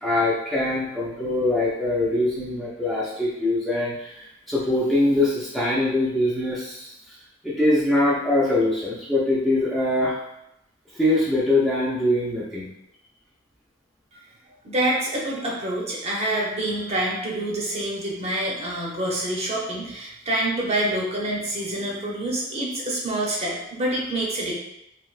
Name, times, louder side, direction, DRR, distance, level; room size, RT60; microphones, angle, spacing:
voice 1, 0.0-6.9 7.4-10.2 10.9-12.7, left 1 dB, ahead, -8 dB, 0.4 m, -23 dB
voice 2, 14.6-24.5, right 1 dB, 30° right, -3 dB, 0.7 m, -27 dB
3.2 x 2.8 x 2.4 m, 0.83 s
head